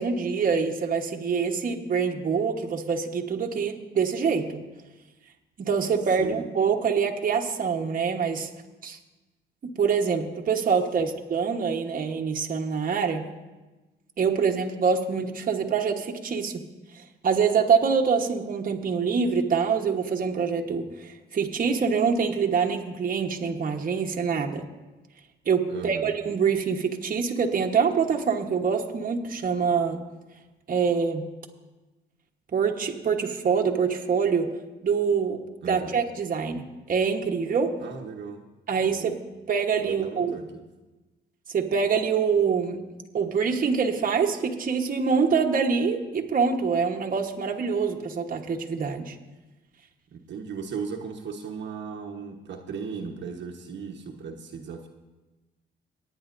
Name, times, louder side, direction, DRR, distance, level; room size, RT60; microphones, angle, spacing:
voice 1, 0.0-4.6 5.6-8.5 8.8-9.0 9.6-13.3 14.2-16.6 16.9-24.6 25.5-30.0 30.7-31.3 32.5-34.5 34.8-37.7 38.7-39.2 39.5-40.4 41.5-42.9 43.1-49.2, right 6 dB, 45° right, 1 dB, 1.2 m, -25 dB
voice 2, 6.2-6.5 11.0-11.1 25.7-26.1 35.6-36.0 37.8-38.4 38.8-39.1 39.8-40.6 50.1-54.9, right 5 dB, 65° right, 1 dB, 1.2 m, -37 dB
24.0 x 9.5 x 2.6 m, 1.1 s
cardioid pair, 90°, 20 cm